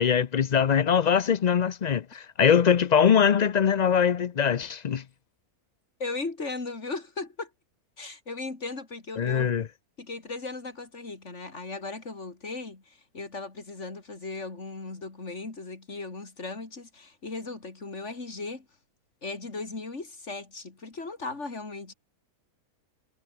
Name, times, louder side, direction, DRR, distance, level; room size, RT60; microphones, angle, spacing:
voice 1, 0.0-5.0 9.2-9.6, left 7 dB, 75° left, 0.3 m, -22 dB
voice 2, 6.0-7.5 8.0-9.6 10.0-18.7 19.2-21.9, left 3 dB, 50° left, 3.8 m, -37 dB
omnidirectional pair, 1.6 m